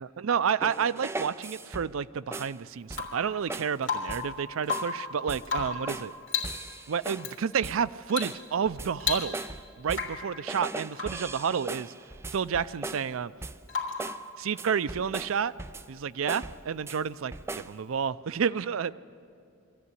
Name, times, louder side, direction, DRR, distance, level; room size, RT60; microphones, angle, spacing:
voice 1, 0.0-6.1 6.9-9.4 9.8-11.9 12.3-13.3 14.4-15.5 15.9-18.9, right 7 dB, 90° right, 17 dB, 0.5 m, -30 dB
sound 1, 0.6-2.0 2.3-2.6 2.9-3.2 3.5-3.8 4.1-4.4 4.7-5.0 5.3-6.1 6.4-7.3 7.6-7.9 8.2-10.2 10.5-13.1 13.4-13.7 14.0-14.3 14.6-16.0 16.3-17.0 17.3-17.8, right 2 dB, 15° right, 0.4 m, -39 dB
Rain / Water tap faucet / Drip, 2.9-3.3 3.8-4.3 4.6-5.1 5.4-5.9 6.3-6.6 7.2-7.4 8.1-8.4 8.7-8.8 9.0-9.6 9.9-10.3 10.9-11.3 13.7-14.1 16.0-16.1, left 6 dB, 65° left, 3.3 m, -33 dB
23.5 x 14.5 x 9.7 m, 2.4 s
head